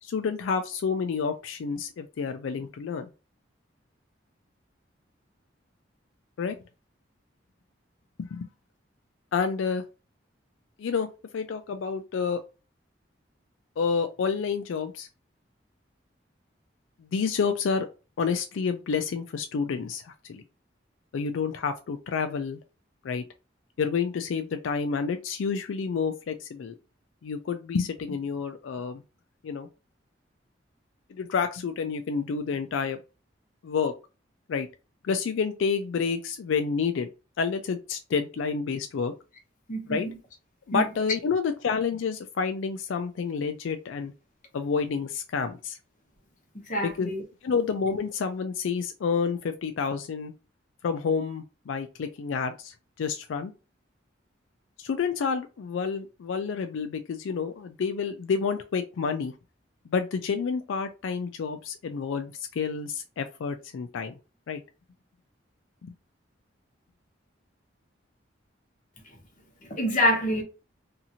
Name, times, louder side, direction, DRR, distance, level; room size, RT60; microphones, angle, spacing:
voice 1, 0.0-3.1 6.4-6.6 8.2-8.5 9.3-9.8 10.8-12.4 13.8-15.1 17.0-17.9 18.2-20.4 21.1-22.6 23.0-23.2 23.8-26.7 27.2-29.0 29.4-29.7 31.1-33.0 33.6-33.9 34.5-34.7 35.0-37.1 37.4-39.1 39.9-40.1 40.7-44.1 44.5-45.8 46.8-47.1 47.4-50.3 50.8-53.5 54.8-59.3 59.9-64.2 64.5-64.6 65.8-65.9, left 5 dB, 90° left, 0.4 m, -29 dB
voice 2, 39.7-40.1 40.7-40.9 46.6-47.2 69.8-70.4, equal, 45° left, 0.9 m, -26 dB
2.7 x 2.5 x 2.7 m
head